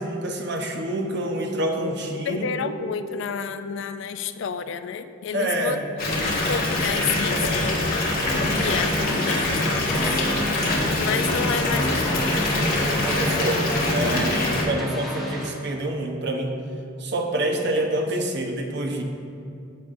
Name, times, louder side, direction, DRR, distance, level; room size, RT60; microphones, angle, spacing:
voice 1, 0.0-2.7 5.3-5.8 12.8-16.5 17.0-19.0, right 1 dB, 55° right, 2 dB, 1.0 m, -27 dB
voice 2, 2.3-5.8 6.2-8.3 8.6-10.2 11.0-12.2, left 7 dB, 65° left, 11 dB, 0.4 m, -30 dB
Water tap faucet / Bathtub (filling or washing) / Fill (with liquid), 6.0-14.6, left 2 dB, 50° left, 1.7 m, -24 dB
sound 1, 8.2-15.5, equal, ahead, 1.3 m, -32 dB
14.0 x 7.1 x 2.6 m, 2.5 s
head